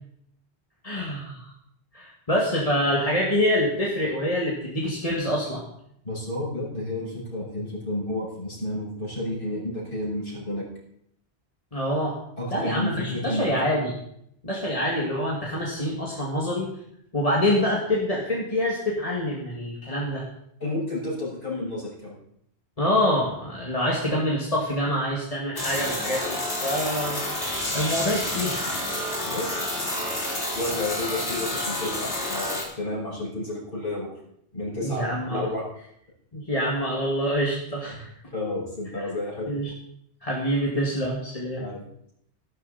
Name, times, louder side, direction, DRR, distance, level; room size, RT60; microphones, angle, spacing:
voice 1, 0.8-1.4 1.9-5.6 11.7-12.2 12.5-14.0 14.4-16.7 17.1-20.2 22.8-27.2 27.7-28.8 34.8-35.5 36.3-38.1 39.5-39.7 40.2-41.6, equal, 30° left, -4 dB, 2.4 m, -26 dB
voice 2, 6.0-10.6 12.4-13.5 20.6-22.2 29.2-29.7 30.5-34.1 34.5-35.0 35.3-35.6 38.3-39.6 41.6-42.1, left 1 dB, 50° left, -4 dB, 6.8 m, -31 dB
sound 1, 25.6-32.6, left 1 dB, 85° left, 4.0 m, -29 dB
14.5 x 12.5 x 4.3 m, 0.72 s
omnidirectional pair, 1.1 m